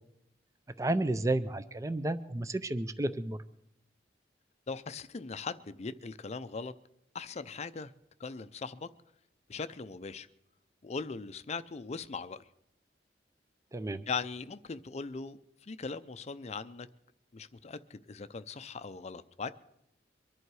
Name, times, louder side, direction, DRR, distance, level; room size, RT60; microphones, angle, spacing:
voice 1, 0.8-3.4 13.7-14.0, right 2 dB, 20° right, 12 dB, 0.5 m, -31 dB
voice 2, 4.7-6.7 7.1-7.9 8.2-8.9 9.5-10.3 10.8-12.4 14.1-16.9 17.3-19.5, left 4 dB, 35° left, 14 dB, 0.5 m, -39 dB
23.5 x 11.0 x 4.8 m, 0.80 s
head